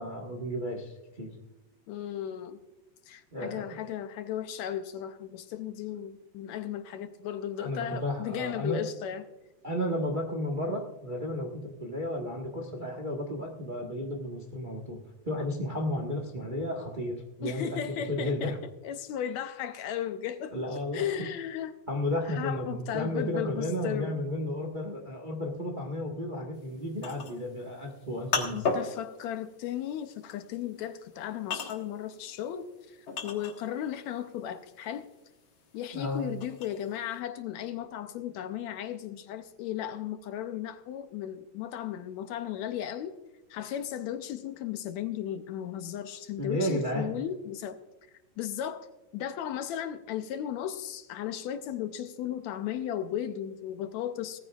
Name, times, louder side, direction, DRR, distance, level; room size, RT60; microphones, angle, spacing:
voice 1, 0.0-1.4 3.3-3.6 7.6-8.8 9.6-15.0 15.2-17.8 18.1-18.6 20.5-21.1 21.9-28.6 35.9-36.2 46.4-47.1, left 1 dB, 35° right, 1 dB, 0.7 m, -33 dB
voice 2, 1.9-2.6 3.1-9.2 17.4-18.5 18.8-20.5 20.9-21.8 22.3-24.2 28.5-35.1 35.7-43.2 43.5-47.8 48.4-48.9 49.1-54.4, left 10 dB, 75° left, 9 dB, 1.9 m, -35 dB
sound 1, 26.6-33.9 34.3-37.2, left 4 dB, 50° left, 1.9 m, -35 dB
18.5 x 14.0 x 2.4 m, 1.0 s
omnidirectional pair, 3.5 m